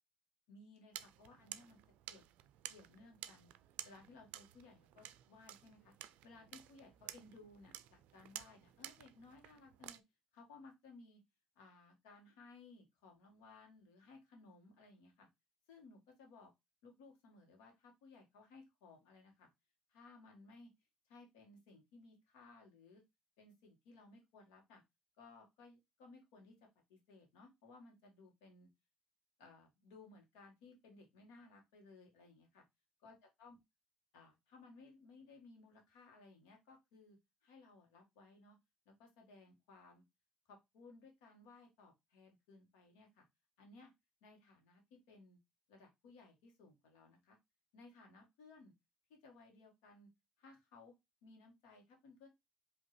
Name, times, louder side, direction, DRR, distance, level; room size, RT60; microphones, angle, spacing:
voice 1, 0.5-1.8 2.1-2.3 2.7-3.5 3.8-5.9 6.2-10.0 10.3-11.2 11.5-15.3 15.7-16.5 16.8-19.5 19.9-20.7 21.1-23.0 23.4-24.8 25.2-28.7 29.4-32.6 33.0-33.6 34.1-37.2 37.4-38.6 38.8-40.0 40.5-43.2 43.6-43.9 44.2-45.4 45.7-47.4 47.7-48.7 49.1-50.1 50.4-50.9 51.2-52.3, left 3 dB, 90° left, 2 dB, 1.5 m, -60 dB
sound 1, 0.9-10.0, right 13 dB, 75° right, 0.4 m, -53 dB
4.9 x 2.8 x 3.1 m, 0.20 s
supercardioid pair, 65°, 2 cm